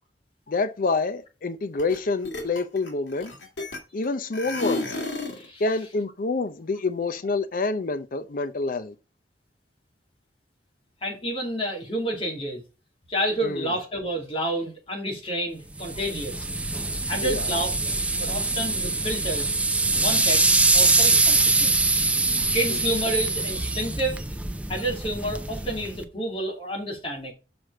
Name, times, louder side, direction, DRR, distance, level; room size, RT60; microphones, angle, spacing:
voice 1, 0.5-3.3 3.9-5.0 5.6-8.9 13.4-13.7 17.2-17.5 22.7-22.8, left 3 dB, 50° left, 0.5 m, -27 dB
sound 1, 1.8-2.0 2.2-4.0 4.3-5.5, left 2 dB, 75° left, 2.2 m, -31 dB
voice 2, 11.0-12.6 13.1-16.3 17.1-17.7 18.1-19.6 20.0-21.9 22.5-24.2 24.7-27.3, right 1 dB, 30° left, 2.7 m, -29 dB
sound 2, 15.8-26.0, right 3 dB, 5° right, 0.6 m, -23 dB
6.1 x 4.8 x 6.2 m
head